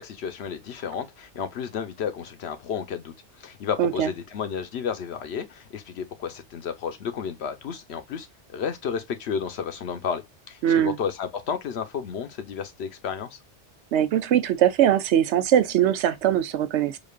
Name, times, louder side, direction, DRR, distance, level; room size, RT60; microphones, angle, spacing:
voice 1, 0.0-13.4, left 7 dB, 70° left, 0.9 m, -32 dB
voice 2, 3.8-4.1 10.6-11.0 13.9-17.0, right 10 dB, 80° right, 0.9 m, -21 dB
5.0 x 2.5 x 2.3 m
omnidirectional pair, 1.2 m